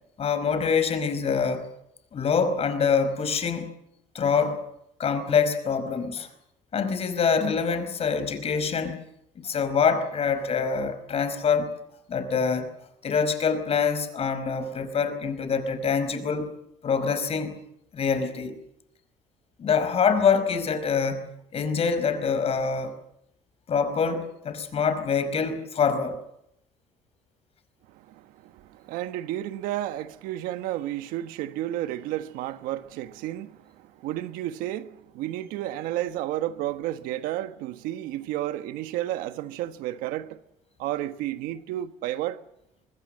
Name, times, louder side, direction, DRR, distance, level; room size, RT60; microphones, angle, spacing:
voice 1, 0.2-1.6 2.1-3.7 4.1-4.6 5.0-6.3 6.7-9.0 9.3-11.7 12.1-12.7 13.0-16.5 16.8-17.6 17.9-18.5 19.6-21.2 21.5-22.9 23.7-26.2, left 6 dB, 45° left, 4.9 m, -25 dB
voice 2, 27.9-40.4 40.8-42.4, right 13 dB, 85° right, 1.4 m, -32 dB
24.0 x 21.5 x 7.7 m
cardioid pair, 100°, 14 cm